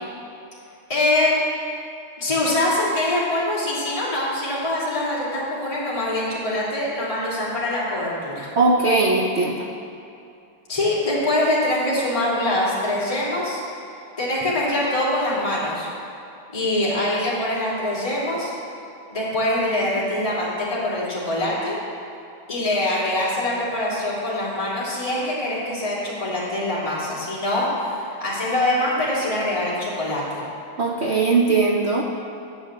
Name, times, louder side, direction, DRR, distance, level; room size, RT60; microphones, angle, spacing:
voice 1, 0.9-1.3 2.2-8.5 10.7-13.6 14.2-15.9 16.5-18.5 19.1-21.8 22.5-30.4, left 1 dB, 15° left, -8 dB, 2.8 m, -24 dB
voice 2, 8.6-9.7 30.8-32.0, right 3 dB, 85° right, 0 dB, 0.5 m, -19 dB
10.0 x 7.6 x 7.5 m, 2.7 s
omnidirectional pair, 2.3 m